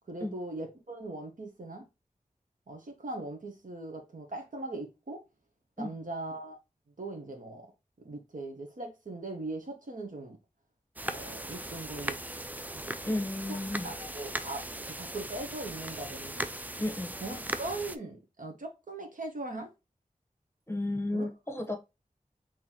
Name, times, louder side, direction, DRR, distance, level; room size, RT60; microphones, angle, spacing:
voice 1, 0.1-1.8 2.7-5.2 5.8-6.5 7.0-7.7 8.0-10.4 11.1-12.2 12.7-13.2 13.5-13.6 13.8-16.5 17.2-19.7 21.1-21.3, right 2 dB, 75° right, 1.0 m, -40 dB
sound 1, 11.0-18.0, right 1 dB, 10° right, 0.4 m, -38 dB
voice 2, 13.0-13.9 16.8-17.1 20.7-21.8, left 1 dB, 20° left, 0.9 m, -33 dB
3.9 x 3.0 x 2.9 m
wide cardioid pair, 50°, 14 cm